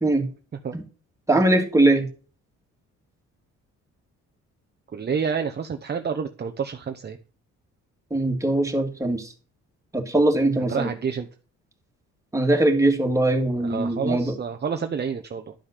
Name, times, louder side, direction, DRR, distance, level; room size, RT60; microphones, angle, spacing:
voice 1, 1.3-2.1 8.1-9.3 9.9-10.9 12.3-14.4, right 2 dB, 10° right, 3 dB, 2.4 m, -21 dB
voice 2, 4.9-7.2 10.7-11.3 13.6-15.5, right 6 dB, 35° right, 5 dB, 0.9 m, -28 dB
11.5 x 5.5 x 6.7 m, 0.37 s
cardioid pair, 90°, 30 cm